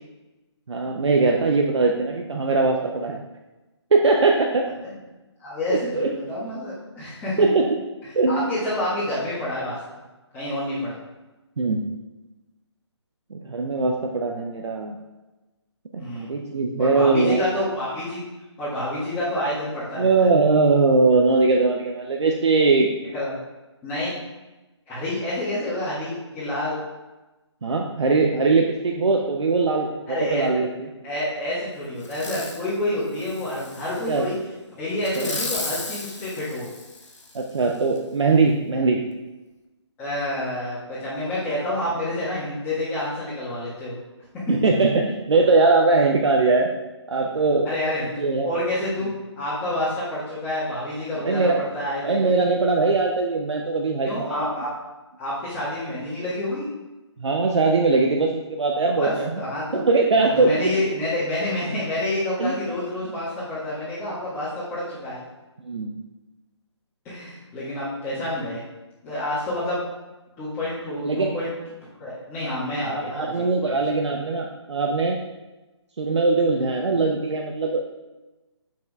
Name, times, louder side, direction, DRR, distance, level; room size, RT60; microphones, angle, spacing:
voice 1, 0.7-3.2 3.9-4.7 5.7-6.1 7.4-7.8 8.1-8.5 11.6-11.9 13.3-15.0 15.9-17.4 20.0-22.9 27.6-30.7 34.1-34.3 35.2-35.4 37.3-39.0 44.5-46.7 47.1-47.7 48.2-48.5 51.2-51.6 52.0-54.6 57.2-59.3 59.7-60.7 62.4-62.5 65.6-66.0 71.0-71.4 72.9-75.2 76.0-77.8, right 3 dB, 70° right, 1 dB, 0.6 m, -21 dB
voice 2, 5.4-7.4 8.3-10.0 10.3-11.0 16.0-16.3 16.8-18.2 18.6-20.3 23.1-23.4 23.8-24.2 24.9-26.8 30.1-30.4 31.0-34.3 34.8-36.7 40.0-43.9 47.6-49.1 49.4-52.2 54.0-54.7 55.2-56.7 59.0-59.8 60.3-65.2 67.0-68.6 69.0-69.8 70.4-71.5 72.0-73.8, left 1 dB, 15° left, -13 dB, 1.6 m, -28 dB
Fireworks, 32.0-32.7 33.2-34.2 35.0-37.4 38.0-38.1, left 3 dB, 80° left, 1.0 m, -34 dB
7.2 x 6.1 x 2.4 m, 1.1 s
figure-of-eight pair, 145°, 15 cm